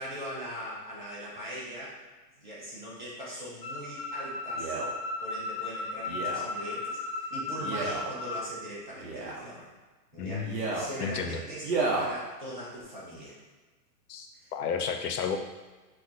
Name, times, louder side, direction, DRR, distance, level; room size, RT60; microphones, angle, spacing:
voice 1, 0.0-2.0 2.4-4.8 5.2-9.7 10.1-11.6 12.0-13.4 14.3-14.5, equal, 30° right, -6 dB, 0.4 m, -40 dB
sound 1, 3.6-8.4, left 2 dB, 10° left, 0.8 m, -35 dB
Male speech man speaking, 4.5-4.9 6.1-6.5 7.6-8.1 9.0-9.5 10.4-10.9 11.6-12.1 12.8-12.9, right 3 dB, 85° right, 0.9 m, -31 dB
voice 2, 10.2-10.6 11.0-11.4 14.1-15.4, left 6 dB, 70° left, 5 dB, 0.5 m, -32 dB
2.3 x 2.3 x 3.8 m, 1.3 s
hypercardioid pair, 170°, 48 cm